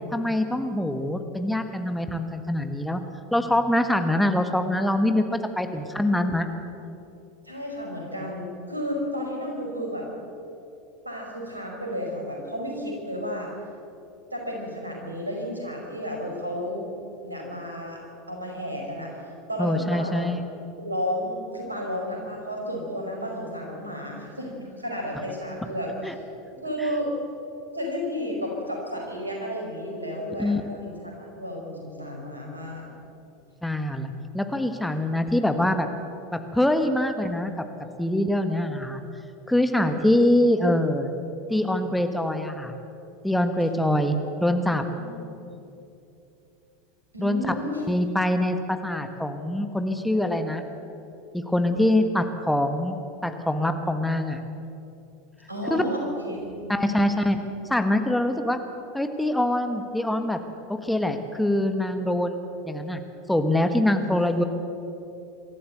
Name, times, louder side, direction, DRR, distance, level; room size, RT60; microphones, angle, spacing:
voice 1, 0.1-3.0 3.3-5.2 5.6-6.4 19.6-20.4 26.0-26.1 26.8-26.9 30.4-30.6 33.6-35.9 36.3-37.6 38.0-39.0 39.5-41.1 41.5-42.7 43.2-44.8 47.2-47.5 47.9-50.6 51.3-54.4 55.7-55.8 56.7-57.4 57.7-58.6 58.9-60.4 60.7-63.0 63.3-64.4, left 1 dB, 5° left, 7 dB, 1.5 m, -24 dB
voice 2, 6.1-6.6 7.4-10.1 11.0-13.5 14.3-16.9 17.2-19.2 19.5-20.2 20.8-25.9 26.6-27.1 27.7-32.8 39.8-39.9 44.4-45.1 47.1-47.8 55.5-57.1 64.2-64.3, equal, 90° right, -1 dB, 5.2 m, -32 dB
24.5 x 13.5 x 8.0 m, 2.8 s
figure-of-eight pair, 80°, 0 cm